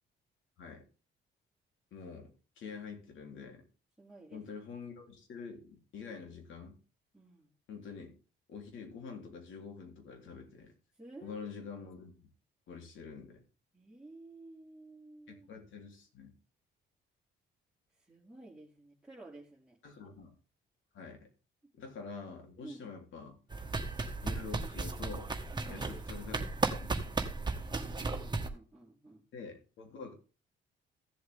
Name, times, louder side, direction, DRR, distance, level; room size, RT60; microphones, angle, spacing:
voice 1, 1.9-2.3 2.6-3.7 4.3-6.8 7.7-8.2 8.5-10.7 11.2-12.3 12.7-13.4 15.3-16.3 19.8-20.4 20.9-21.3 21.8-23.4 24.2-25.3 25.7-27.2 29.3-30.1, left 5 dB, 75° left, 3 dB, 3.6 m, -46 dB
voice 2, 4.0-4.5 7.1-7.5 10.9-11.5 13.7-15.5 17.9-19.8 21.6-21.7 22.6-22.9 25.5-25.9 28.0-29.2, right 2 dB, 5° right, -6 dB, 3.0 m, -53 dB
sound 1, 23.5-28.5, right 3 dB, 20° right, 1.7 m, -35 dB
15.5 x 7.7 x 3.7 m, 0.34 s
cardioid pair, 90°, 20 cm